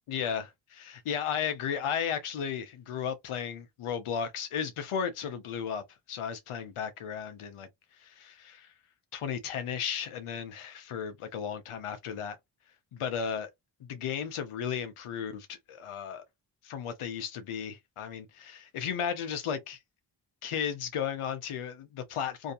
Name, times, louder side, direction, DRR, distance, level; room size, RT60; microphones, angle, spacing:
voice 1, 0.1-7.7 8.0-8.7 9.1-12.4 12.9-13.5 13.8-16.2 16.6-19.8 20.4-22.5, left 7 dB, 80° left, 1.0 m, -34 dB
2.8 x 2.4 x 2.8 m
supercardioid pair, 45°, 49 cm